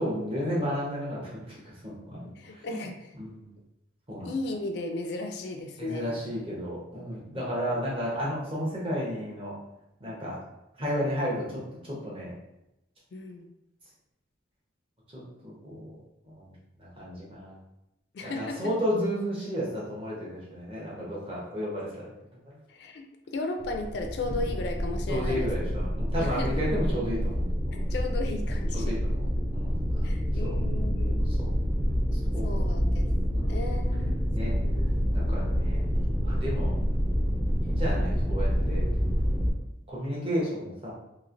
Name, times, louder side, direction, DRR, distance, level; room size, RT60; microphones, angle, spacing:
voice 1, 0.0-2.8 3.2-3.5 4.1-4.3 5.8-9.5 10.0-10.4 10.8-12.3 15.1-16.0 16.4-16.5 16.8-17.6 18.2-22.1 22.5-22.6 25.1-27.9 28.7-29.3 29.5-29.8 30.4-30.5 31.3-31.5 32.3-32.6 33.3-33.7 34.3-34.6 35.3-35.8 36.2-36.8 37.7-38.9 39.9-40.9, equal, 30° right, -6 dB, 0.9 m, -33 dB
voice 2, 2.4-3.1 4.2-6.2 13.1-13.5 18.1-18.7 22.7-25.5 26.2-26.7 27.9-29.0 30.0-31.2 32.4-33.1 33.3-34.2 34.5-35.5 35.9-36.2, left 2 dB, 60° left, 4 dB, 0.3 m, -36 dB
sound 1, 23.6-39.5, equal, 5° right, 0.4 m, -27 dB
sound 2, 24.2-28.2, equal, 70° right, 1.4 m, -43 dB
3.0 x 2.8 x 2.5 m, 0.89 s
head